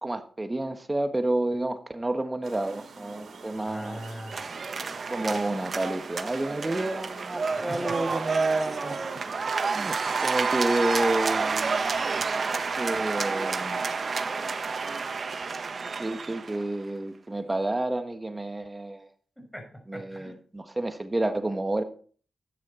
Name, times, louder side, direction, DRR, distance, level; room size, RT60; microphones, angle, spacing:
voice 1, 0.0-4.0 5.1-9.0 9.7-10.0 10.2-11.8 12.8-13.8 16.0-19.1 19.9-21.8, right 1 dB, 20° right, 8 dB, 1.4 m, -30 dB
sound 1, 2.4-15.2, right 4 dB, 80° right, 3.8 m, -45 dB
voice 2, 3.5-4.5 7.5-8.0 19.4-20.3, equal, 5° left, 2 dB, 5.9 m, -42 dB
sound 2, 4.3-16.7, right 4 dB, 55° right, 1.3 m, -29 dB
13.0 x 9.7 x 4.3 m, 0.43 s
cardioid pair, 65°, 0 cm